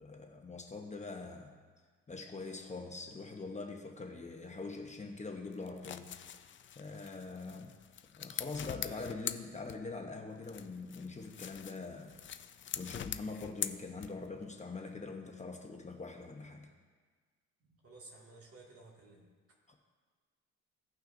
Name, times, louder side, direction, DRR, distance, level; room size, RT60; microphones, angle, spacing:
voice 1, 0.0-1.6 2.1-7.7 8.2-12.2 12.7-16.7 19.7-19.8, left 3 dB, 25° left, 2 dB, 0.9 m, -44 dB
sound 1, 5.5-10.1 10.4-14.4, left 9 dB, 40° left, 0.4 m, -43 dB
voice 2, 17.6-19.6, right 2 dB, 50° right, -2 dB, 2.2 m, -55 dB
16.5 x 5.7 x 2.6 m, 1.5 s
cardioid pair, 90°, 30 cm